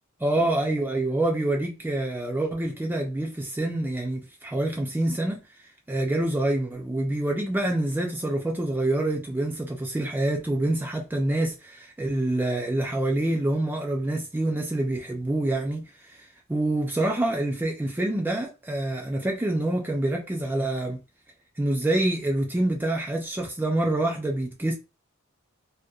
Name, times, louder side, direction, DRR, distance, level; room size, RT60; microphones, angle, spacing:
voice 1, 0.2-5.4 5.9-21.0 21.6-24.7, right 1 dB, 10° right, 0.4 m, -26 dB
2.6 x 2.1 x 2.3 m
head